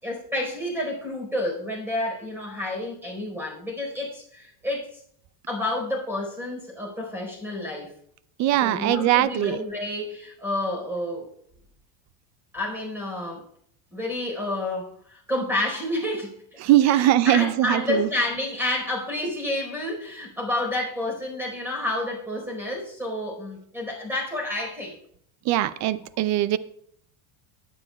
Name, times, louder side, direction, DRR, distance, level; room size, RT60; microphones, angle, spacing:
voice 1, 0.0-5.0 5.5-7.9 8.6-11.3 12.5-13.5 13.9-16.4 16.8-25.0, left 1 dB, 5° right, 4.2 m, -29 dB
voice 2, 8.4-9.6 16.6-18.1 25.5-26.6, right 14 dB, 40° right, 0.5 m, -21 dB
19.0 x 9.3 x 2.3 m
supercardioid pair, 130°, 42 cm